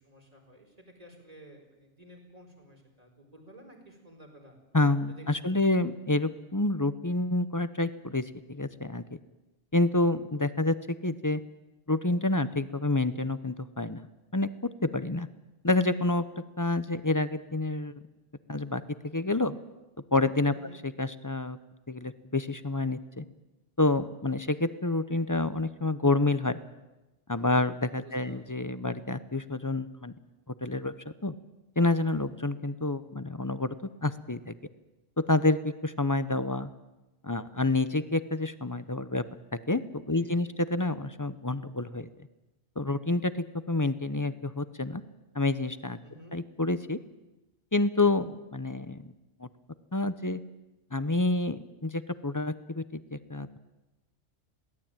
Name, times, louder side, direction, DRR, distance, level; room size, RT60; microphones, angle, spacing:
voice 1, 0.0-4.6 5.1-5.8 20.5-20.8 28.0-28.5 40.1-40.5 46.0-46.4, right 1 dB, 30° right, 2 dB, 4.6 m, -53 dB
voice 2, 4.7-9.2 9.7-10.7 11.0-11.4 11.9-14.1 14.3-14.5 14.9-15.3 15.6-16.2 16.6-17.9 18.5-19.6 20.1-20.5 20.8-21.6 21.9-23.2 23.8-26.6 27.3-30.1 30.6-30.9 31.2-31.3 31.8-33.7 34.0-34.5 35.3-36.7 37.2-39.2 39.7-42.1 42.8-43.3 43.7-45.0 45.3-46.0 46.3-47.0 47.7-49.1 49.4-49.5 49.9-50.4 50.9-53.6, left 2 dB, 20° left, 13 dB, 0.7 m, -28 dB
22.0 x 17.0 x 9.0 m, 1.0 s
omnidirectional pair, 1.2 m